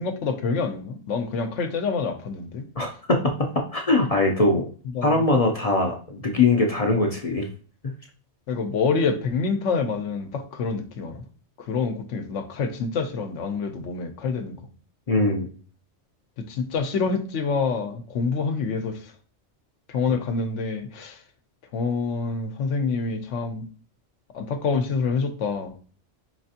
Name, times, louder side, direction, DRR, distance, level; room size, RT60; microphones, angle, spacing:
voice 1, 0.0-2.7 4.9-5.2 8.5-11.2 11.6-14.6 16.5-19.0 19.9-21.2 21.7-23.7 24.3-25.8, left 4 dB, 85° left, 1.0 m, -27 dB
voice 2, 2.8-3.2 3.7-4.6 5.0-7.5 15.1-15.5, left 2 dB, 45° left, 0.5 m, -21 dB
4.9 x 3.3 x 2.7 m
omnidirectional pair, 1.2 m